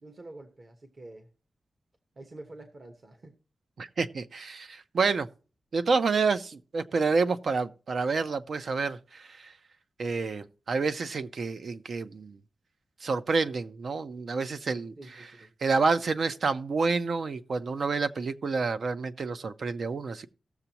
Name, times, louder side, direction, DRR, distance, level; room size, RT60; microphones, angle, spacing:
voice 1, 0.0-1.3 2.2-3.4 15.0-15.5, right 2 dB, 35° right, 1.1 m, -47 dB
voice 2, 3.8-5.3 5.7-9.5 10.0-12.4 13.0-15.3 15.6-20.3, right 4 dB, 55° right, 0.6 m, -29 dB
18.0 x 6.9 x 2.9 m
wide cardioid pair, 170°, 0 cm